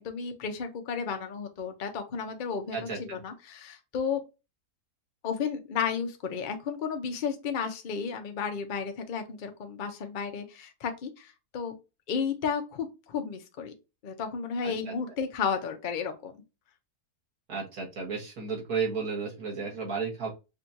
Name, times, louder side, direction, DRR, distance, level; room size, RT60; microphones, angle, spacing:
voice 1, 0.0-4.2 5.2-11.7 12.1-13.7 14.0-16.3, left 6 dB, 50° left, 6 dB, 0.6 m, -33 dB
voice 2, 2.7-3.2 14.6-14.9 17.5-20.3, right 5 dB, 60° right, -2 dB, 1.9 m, -33 dB
5.0 x 2.6 x 2.8 m, 0.27 s
omnidirectional pair, 1.7 m